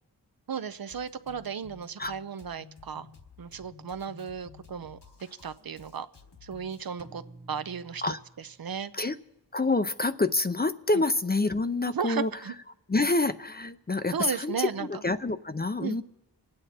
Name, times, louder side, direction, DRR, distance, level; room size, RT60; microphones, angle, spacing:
voice 1, 0.5-3.1 3.4-5.0 5.4-6.1 6.4-7.2 7.5-8.1 8.6-8.9 11.9-12.5 14.1-14.9 15.8-16.0, right 7 dB, 55° right, 0.7 m, -34 dB
Drum kit, 0.9-6.9, left 6 dB, 70° left, 1.6 m, -53 dB
sound 1, 7.0-8.9, right 2 dB, 35° right, 1.4 m, -51 dB
voice 2, 9.5-12.3 12.9-16.0, left 3 dB, 25° left, 0.5 m, -27 dB
26.0 x 8.8 x 4.3 m
cardioid pair, 45°, 42 cm